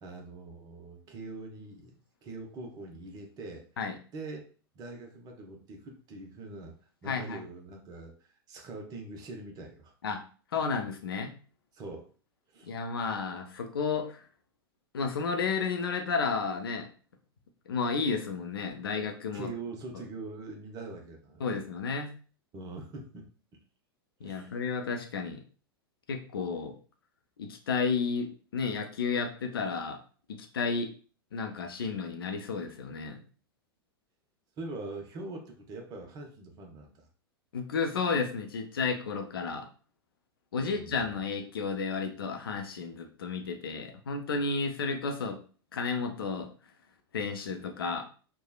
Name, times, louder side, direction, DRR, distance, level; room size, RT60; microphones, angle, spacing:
voice 1, 0.0-3.7 4.1-6.8 7.0-9.9 11.7-12.1 12.5-12.7 19.3-21.6 22.5-23.3 24.2-24.6 34.6-37.1 40.5-41.2, right 2 dB, 30° right, 2 dB, 0.7 m, -43 dB
voice 2, 7.1-7.4 10.0-10.2 10.5-11.3 12.6-14.2 14.9-16.9 17.7-19.5 21.4-22.1 24.2-25.4 26.1-26.7 27.4-28.3 28.5-30.0 30.3-30.9 31.3-33.2 37.5-39.7 40.5-45.4 45.7-46.5 47.1-48.0, left 5 dB, 65° left, 5 dB, 0.5 m, -32 dB
3.2 x 2.1 x 2.3 m, 0.39 s
figure-of-eight pair, 95°, 13 cm